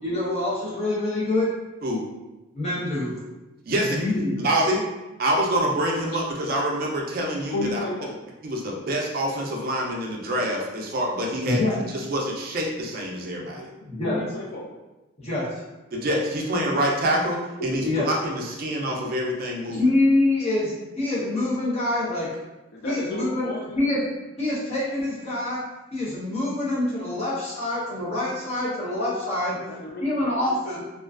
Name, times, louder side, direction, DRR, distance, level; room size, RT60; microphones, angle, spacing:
voice 1, 0.0-1.5 2.5-3.2 3.7-4.5 11.5-11.8 13.9-14.2 15.2-15.6 17.6-18.1 19.8-22.4 22.8-24.1 24.4-25.6 25.9-29.6 30.0-30.8, left 2 dB, 35° left, -7 dB, 0.7 m, -25 dB
voice 2, 3.7-4.0 4.4-4.8 5.2-7.8 8.4-11.6 11.9-13.6 15.9-19.8, right 1 dB, 45° right, -1 dB, 0.4 m, -26 dB
voice 3, 7.5-8.2 14.0-14.7 16.3-16.7 22.7-23.8 29.5-30.6, left 1 dB, 50° left, -1 dB, 0.3 m, -33 dB
2.4 x 2.2 x 2.3 m, 1.0 s
head